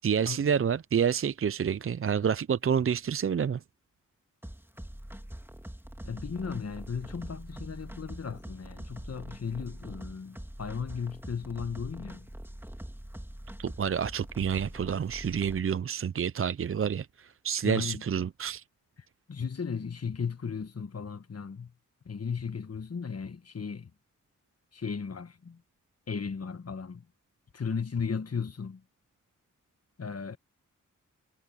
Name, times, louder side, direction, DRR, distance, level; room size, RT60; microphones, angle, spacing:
voice 1, 0.0-3.6 13.6-18.6, right 7 dB, 45° right, 0.5 m, -28 dB
sound 1, 4.4-15.6, right 1 dB, 5° right, 3.1 m, -43 dB
voice 2, 6.0-12.3 17.6-18.0 19.3-21.7 22.0-23.9 24.7-25.6 26.1-27.1 27.5-28.8 30.0-30.4, left 6 dB, 50° left, 1.5 m, -35 dB
cardioid pair, 45°, 32 cm